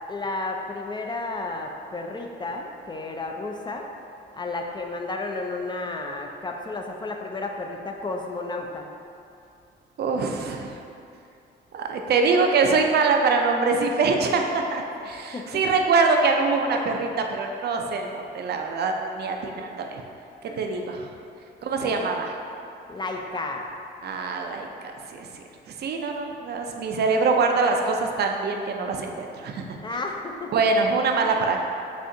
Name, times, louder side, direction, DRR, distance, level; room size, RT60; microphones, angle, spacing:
voice 1, 0.1-3.9 4.3-8.9 15.0-15.6 16.7-17.1 19.4-19.7 20.5-20.8 21.5-22.3 22.9-23.7 29.8-30.5 31.2-31.4, left 2 dB, 25° left, 2 dB, 0.3 m, -33 dB
voice 2, 10.0-10.7 11.7-20.0 20.6-21.1 21.6-22.3 24.0-25.3 25.8-29.8 30.5-31.6, right 4 dB, 55° right, 3 dB, 0.4 m, -24 dB
6.4 x 2.4 x 2.6 m, 2.6 s
cardioid pair, 90°, 20 cm